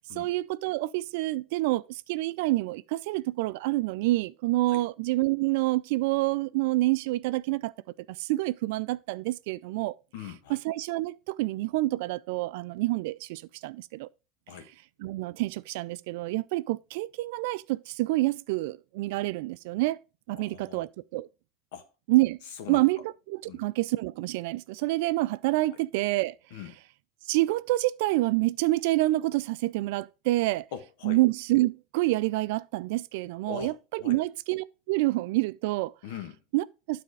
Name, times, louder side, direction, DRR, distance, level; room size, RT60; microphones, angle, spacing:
voice 1, 0.2-7.7 8.1-9.9 10.5-14.1 15.0-20.0 20.3-21.3 22.1-22.4 22.7-23.0 23.3-26.3 27.3-30.7 31.0-35.9 36.5-37.0, right 19 dB, 70° right, 0.3 m, -27 dB
voice 2, 10.1-10.6 14.5-14.7 20.3-20.8 21.7-21.8 22.5-22.8 23.4-23.6 26.5-26.8 30.7-31.2 33.5-33.7 34.0-34.2 36.0-36.4, left 8 dB, 70° left, 1.2 m, -41 dB
9.6 x 4.2 x 4.8 m
hypercardioid pair, 80°, 0 cm